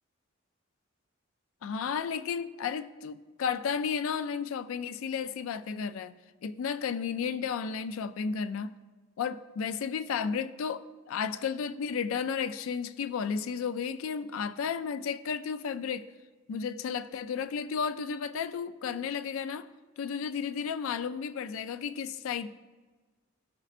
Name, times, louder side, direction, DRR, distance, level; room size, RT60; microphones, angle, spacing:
voice 1, 1.6-6.2 6.4-8.7 9.2-16.1 16.5-19.7 20.0-22.5, left 6 dB, 75° left, 13 dB, 0.3 m, -33 dB
14.0 x 5.3 x 2.5 m, 1.3 s
head